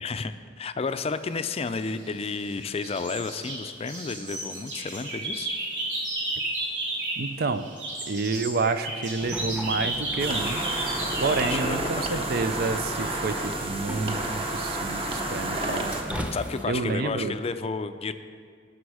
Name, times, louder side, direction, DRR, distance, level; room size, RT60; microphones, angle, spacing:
voice 1, 0.0-5.5 11.4-12.3 16.3-18.1, left 4 dB, 35° left, 11 dB, 0.4 m, -32 dB
sound 1, 1.7-2.5 2.8-7.3 7.6-11.6, right 2 dB, 90° right, 3.3 m, -32 dB
voice 2, 7.2-7.7 8.1-10.6 11.2-16.3 16.7-17.4, right 4 dB, 55° right, 11 dB, 0.5 m, -29 dB
sound 2, 9.2-16.6, equal, 5° right, 0.8 m, -38 dB
sound 3, 10.2-16.0, right 2 dB, 30° right, 1.1 m, -30 dB
17.5 x 6.2 x 4.8 m, 2.1 s
head